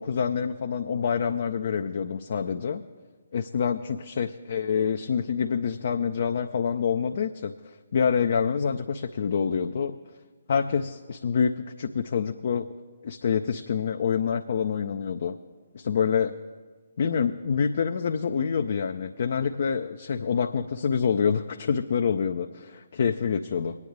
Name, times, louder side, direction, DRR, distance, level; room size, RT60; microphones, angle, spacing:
voice 1, 0.0-2.8 3.3-7.5 7.9-10.0 10.5-12.7 13.0-15.4 15.7-16.3 17.0-23.8, left 6 dB, 50° left, 7 dB, 0.4 m, -26 dB
22.5 x 9.5 x 3.3 m, 1.5 s
figure-of-eight pair, 135°, 0 cm